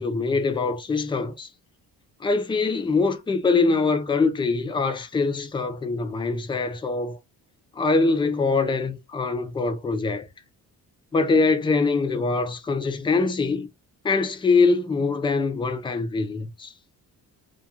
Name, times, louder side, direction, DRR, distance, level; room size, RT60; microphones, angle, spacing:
voice 1, 0.0-1.5 2.2-7.2 7.8-10.3 11.1-13.7 14.0-16.7, left 4 dB, 15° left, 0.4 m, -23 dB
2.4 x 2.2 x 2.8 m
cardioid pair, 135°, 37 cm